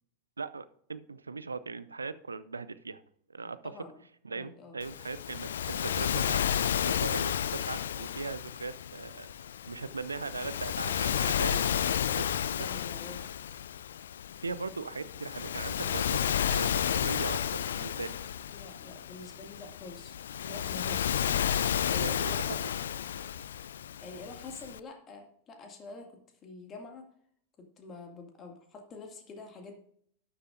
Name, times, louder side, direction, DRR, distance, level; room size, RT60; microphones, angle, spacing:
voice 1, 0.4-3.0 3.3-3.7 4.2-6.4 6.8-9.3 9.7-11.6 12.1-12.7 14.4-16.2 16.5-18.1 22.0-22.6, right 4 dB, 75° right, 15 dB, 0.5 m, -39 dB
voice 2, 3.6-4.0 4.3-4.8 11.0-13.2 18.5-20.2 20.4-22.6 24.0-26.1 26.4-27.1 27.8-29.7, left 3 dB, 25° left, 3 dB, 2.3 m, -47 dB
Waves surf, 4.8-24.8, left 9 dB, 65° left, 0.3 m, -32 dB
12.0 x 10.0 x 2.6 m, 0.65 s
figure-of-eight pair, 90°, 0 cm